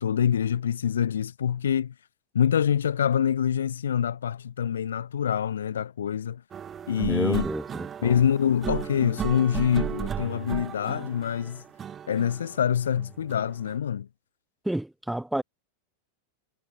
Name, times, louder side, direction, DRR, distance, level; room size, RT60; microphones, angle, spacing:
voice 1, 0.0-1.9 2.3-6.4 6.9-7.5 8.0-11.6 12.1-14.1, left 8 dB, 65° left, 0.4 m, -25 dB
sound 1, 6.5-13.8, right 8 dB, 25° right, 0.6 m, -35 dB
voice 2, 7.0-8.2 14.6-15.4, right 1 dB, 5° right, 1.5 m, -30 dB
figure-of-eight pair, 90°, 0 cm